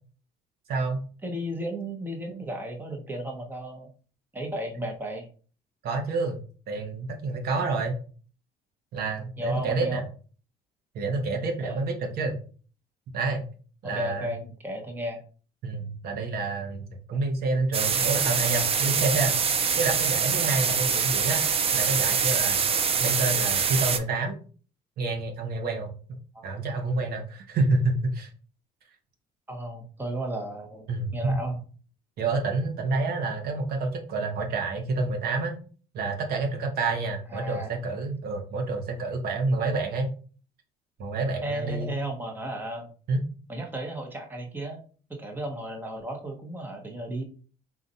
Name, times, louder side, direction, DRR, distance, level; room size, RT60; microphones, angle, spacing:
voice 1, 0.7-1.0 5.8-6.4 6.7-8.0 8.9-10.0 10.9-12.4 13.1-13.4 13.8-14.3 15.6-19.3 19.8-21.4 21.7-22.7 23.0-24.4 25.0-25.9 26.4-28.3 30.9-31.4 32.2-35.5 35.9-40.1 41.0-41.9 43.1-43.3, right 3 dB, 65° right, 4 dB, 0.9 m, -28 dB
voice 2, 1.2-3.9 4.3-5.3 9.4-10.0 11.6-11.8 13.8-15.2 26.3-26.6 29.5-30.9 31.1-31.6 37.3-37.7 41.4-42.9 43.5-44.8 45.2-47.2, right 1 dB, 10° right, 2 dB, 0.9 m, -34 dB
sound 1, 17.7-24.0, right 6 dB, 35° right, 0.5 m, -24 dB
3.9 x 2.4 x 4.0 m, 0.40 s
cardioid pair, 110°, 17 cm